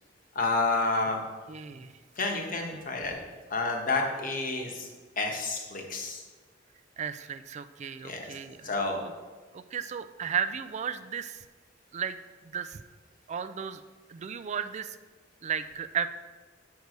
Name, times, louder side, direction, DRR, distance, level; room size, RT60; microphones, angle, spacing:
voice 1, 0.3-1.2 2.2-3.2 3.5-4.9 5.2-6.2 8.0-8.3 8.6-9.0, left 3 dB, 45° left, 2 dB, 1.2 m, -29 dB
voice 2, 1.5-1.9 7.0-8.7 9.5-11.4 11.9-12.2 12.4-12.8 13.3-13.8 14.1-15.0 15.4-16.1, right 7 dB, 35° right, 11 dB, 0.3 m, -34 dB
6.8 x 4.7 x 6.5 m, 1.4 s
head